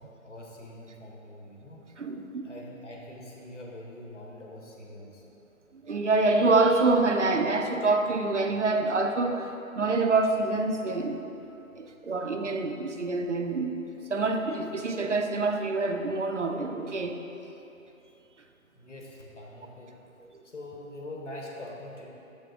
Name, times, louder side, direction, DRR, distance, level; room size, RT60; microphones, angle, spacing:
voice 1, 0.2-1.8 2.4-5.2 12.1-12.2 18.7-19.9 20.4-22.1, left 1 dB, 55° left, -2 dB, 1.1 m, -43 dB
voice 2, 2.0-2.4 5.8-9.5 9.8-11.2 11.8-13.7 14.1-17.2 20.3-20.4, right 3 dB, 60° right, 5 dB, 0.5 m, -26 dB
6.8 x 3.5 x 5.0 m, 2.9 s
hypercardioid pair, 175°, 42 cm